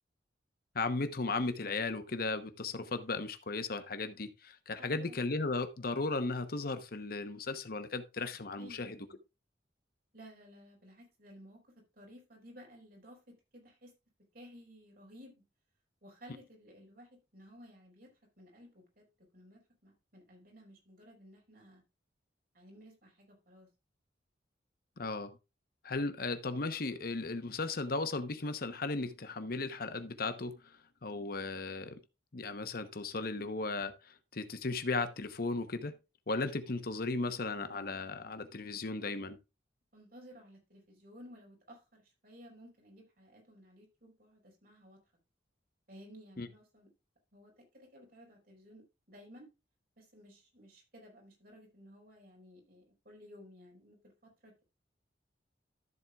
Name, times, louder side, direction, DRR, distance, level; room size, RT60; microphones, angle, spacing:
voice 1, 0.7-9.0 25.0-25.4 25.8-32.0 32.3-35.9 36.3-39.4 46.4-46.5, left 3 dB, 55° left, 0.9 m, -36 dB
voice 2, 4.7-5.2 8.6-9.2 10.1-13.9 14.3-15.4 16.0-18.1 18.4-19.1 19.3-21.8 22.5-23.7 39.9-45.0 45.9-46.9 47.3-49.5 50.0-54.6, equal, 55° right, 4.5 m, -56 dB
13.5 x 7.8 x 2.4 m
head